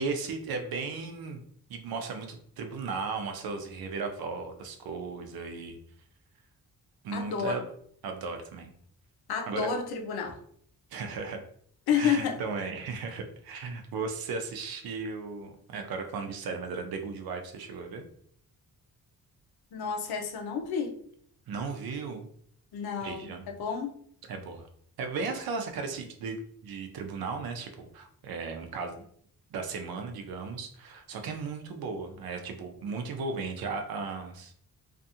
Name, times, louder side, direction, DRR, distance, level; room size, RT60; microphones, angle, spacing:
voice 1, 0.0-1.4 1.7-5.8 7.0-7.6 8.0-8.7 9.5-9.7 10.9-11.4 11.9-18.1 21.5-22.3 23.0-23.5 24.3-24.7 25.0-26.4 26.6-29.0 29.5-34.5, right 4 dB, 75° right, 5 dB, 0.6 m, -36 dB
voice 2, 7.1-7.7 9.3-10.4 11.9-12.4 19.7-21.0 22.7-24.0, left 7 dB, 90° left, 4 dB, 0.6 m, -30 dB
2.5 x 2.4 x 2.7 m, 0.64 s
wide cardioid pair, 140°, 36 cm